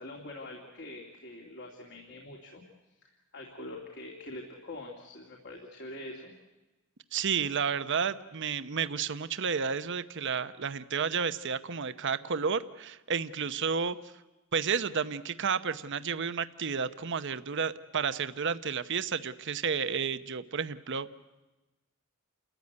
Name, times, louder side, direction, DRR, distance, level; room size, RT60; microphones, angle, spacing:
voice 1, 0.0-2.6 3.0-6.3, left 1 dB, 55° left, 0 dB, 2.9 m, -44 dB
voice 2, 7.1-14.0 14.5-21.1, right 6 dB, 55° right, 12 dB, 0.9 m, -31 dB
30.0 x 14.0 x 9.5 m, 1.1 s
head